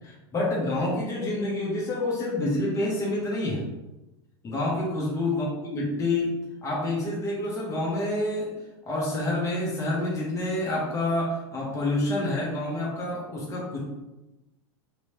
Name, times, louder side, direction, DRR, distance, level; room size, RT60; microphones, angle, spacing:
voice 1, 0.0-3.6 4.4-6.3 6.6-8.5 8.9-13.8, left 2 dB, 20° left, -4 dB, 1.0 m, -28 dB
3.1 x 3.0 x 2.9 m, 1.0 s
hypercardioid pair, 100°, 15 cm